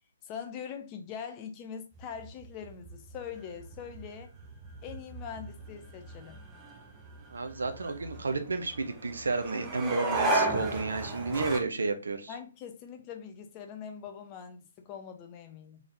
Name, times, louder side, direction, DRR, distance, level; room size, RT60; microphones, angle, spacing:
voice 1, 0.2-4.3 4.8-6.4 12.3-15.8, left 7 dB, 25° left, 0.7 m, -42 dB
sound 1, 2.0-11.6, right 2 dB, 15° right, 0.7 m, -35 dB
voice 2, 7.3-12.3, right 3 dB, 65° right, 0.5 m, -32 dB
3.7 x 3.4 x 2.5 m
figure-of-eight pair, 130°, 0 cm